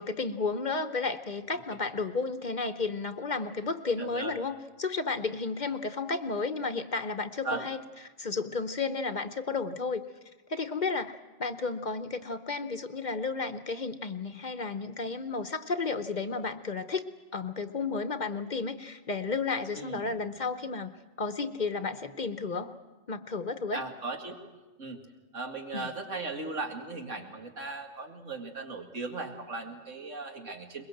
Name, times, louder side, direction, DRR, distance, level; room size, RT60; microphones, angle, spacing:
voice 1, 0.0-10.1 10.5-17.0 17.3-22.7 23.1-23.8 25.7-25.9, left 4 dB, 40° left, 9 dB, 0.9 m, -33 dB
voice 2, 4.0-4.3 7.4-7.7 19.7-20.2 23.7-24.4 24.8-25.0 25.3-30.9, right 3 dB, 90° right, 3 dB, 2.6 m, -37 dB
22.5 x 21.5 x 7.8 m, 1.2 s
omnidirectional pair, 1.3 m